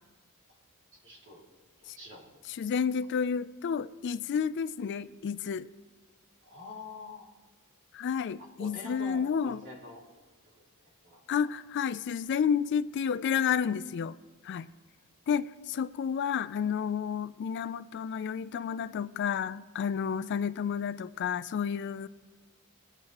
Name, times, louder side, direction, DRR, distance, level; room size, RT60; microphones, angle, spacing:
voice 1, 1.0-1.4 1.8-2.4 6.4-7.3 8.4-10.0 10.5-11.5, left 2 dB, 55° right, 2.6 m, -46 dB
voice 2, 2.5-5.7 7.9-9.6 11.3-14.2 14.4-14.7 15.3-22.1, left 7 dB, 50° left, 0.3 m, -31 dB
21.5 x 9.0 x 3.0 m
head